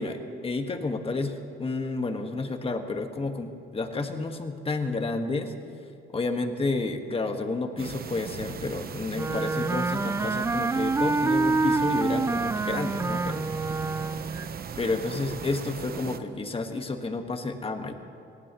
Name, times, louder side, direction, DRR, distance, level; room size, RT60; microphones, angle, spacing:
voice 1, 0.0-5.5 6.1-13.5 14.8-17.9, left 3 dB, 30° left, 5 dB, 1.6 m, -30 dB
sound 1, 7.8-16.2, right 7 dB, 50° right, 1.0 m, -38 dB
Wind instrument woodwind instrument, 9.1-14.5, right 3 dB, 15° right, 0.3 m, -27 dB
25.0 x 18.5 x 3.1 m, 2.6 s
cardioid pair, 90°, 20 cm